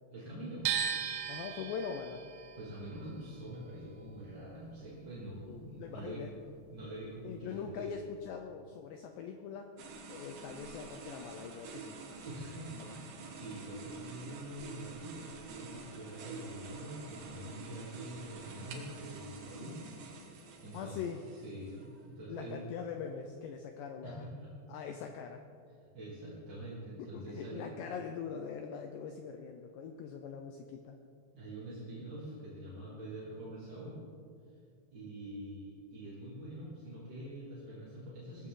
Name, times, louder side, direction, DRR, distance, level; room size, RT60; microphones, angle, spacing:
voice 1, 0.1-0.9 2.5-6.2 6.7-7.9 12.2-19.8 20.2-21.0 21.3-22.6 24.0-24.5 25.9-27.7 31.3-34.0 34.9-38.5, right 1 dB, 25° right, -8 dB, 2.7 m, -45 dB
sound 1, 0.7-6.7 7.0-8.3, right 8 dB, 85° right, 3.6 m, -39 dB
voice 2, 1.3-2.2 5.4-6.3 7.2-9.7 10.1-12.0 12.8-13.0 19.6-19.8 20.7-21.2 22.3-24.3 24.7-25.4 27.1-31.0, left 7 dB, 85° left, 5 dB, 2.4 m, -42 dB
sound 2, 9.8-22.1, right 4 dB, 65° right, 2.4 m, -48 dB
19.5 x 14.5 x 3.8 m, 2.3 s
omnidirectional pair, 5.9 m